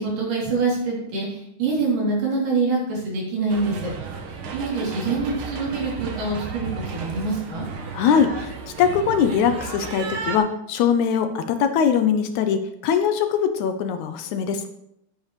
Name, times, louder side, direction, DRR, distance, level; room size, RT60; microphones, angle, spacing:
voice 1, 0.0-3.9 4.5-7.7, right 3 dB, 85° right, -5 dB, 4.9 m, -25 dB
sound 1, 3.5-10.4, right 5 dB, 65° right, 1.3 m, -33 dB
voice 2, 7.9-8.5 8.8-14.7, left 7 dB, 75° left, 8 dB, 1.9 m, -21 dB
9.7 x 9.5 x 3.2 m, 0.77 s
omnidirectional pair, 3.7 m